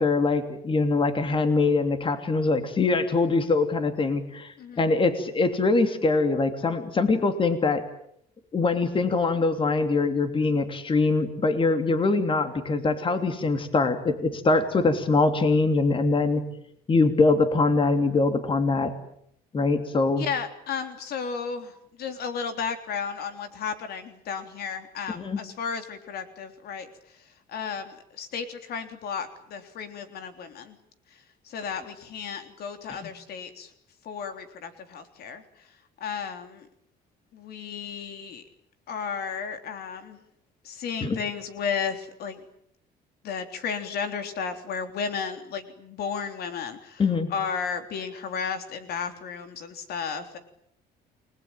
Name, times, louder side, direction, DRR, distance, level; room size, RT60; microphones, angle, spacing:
voice 1, 0.0-7.8 8.5-16.4 16.9-18.9 19.5-20.3 25.1-25.4 32.9-33.1 41.0-41.2 47.0-47.3, left 3 dB, 30° left, 8 dB, 3.1 m, -23 dB
voice 2, 20.2-26.9 27.5-30.8 31.5-33.7 34.1-35.4 36.0-36.7 37.3-38.4 38.9-40.2 40.6-42.4 43.2-47.0 47.3-50.4, left 6 dB, 70° left, 7 dB, 3.6 m, -33 dB
29.5 x 21.0 x 9.1 m, 0.71 s
cardioid pair, 110°, 17 cm